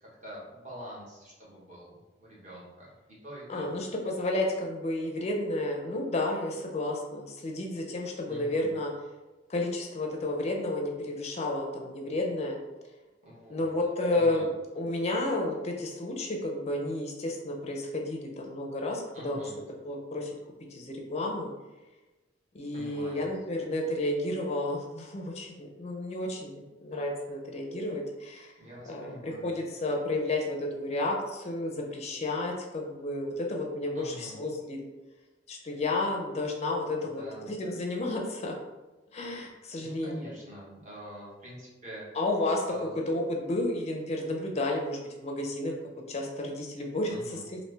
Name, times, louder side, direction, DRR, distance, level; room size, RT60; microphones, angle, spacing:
voice 1, 0.0-3.7 8.3-8.7 13.2-13.7 14.1-14.4 19.1-19.6 22.7-23.3 28.6-29.6 33.9-34.4 37.2-37.5 39.8-42.0 42.7-43.0 47.1-47.4, equal, 40° right, -6 dB, 1.2 m, -45 dB
voice 2, 3.5-8.9 9.5-12.6 13.5-14.5 14.7-19.4 19.8-20.3 20.7-21.5 22.5-28.5 28.9-34.8 35.5-38.6 39.1-40.3 42.1-42.6 43.1-45.7 46.1-47.6, left 2 dB, 35° left, 1 dB, 0.4 m, -31 dB
3.1 x 2.6 x 3.2 m, 1.1 s
head